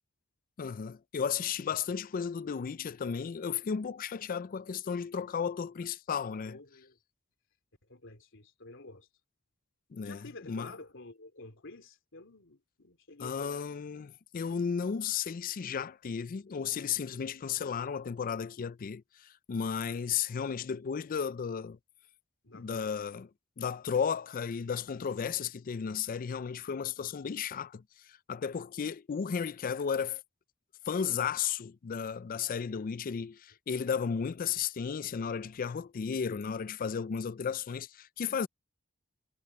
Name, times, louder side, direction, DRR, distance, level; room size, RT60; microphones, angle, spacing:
voice 1, 0.6-6.6 9.9-10.2 10.5-10.7 13.2-21.8 22.5-23.3 23.6-27.8 28.1-30.2 30.9-38.5, left 7 dB, 40° left, 0.4 m, -34 dB
voice 2, 6.5-7.0 7.9-9.1 10.0-13.7 22.4-23.2, left 2 dB, 65° left, 3.4 m, -50 dB
head